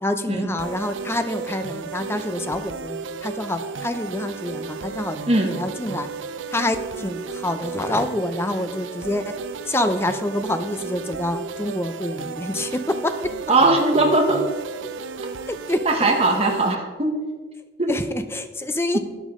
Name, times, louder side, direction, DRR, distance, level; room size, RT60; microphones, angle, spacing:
voice 1, 0.0-6.1 6.5-9.3 9.7-13.3 15.5-15.9 17.9-19.0, left 1 dB, 15° left, 9 dB, 0.6 m, -27 dB
sound 1, 0.6-16.7, right 5 dB, 90° right, 0.6 m, -33 dB
voice 2, 13.5-14.4 15.8-17.2 17.8-17.9, right 2 dB, 30° right, 0 dB, 1.2 m, -19 dB
12.5 x 9.4 x 3.7 m, 1.4 s
head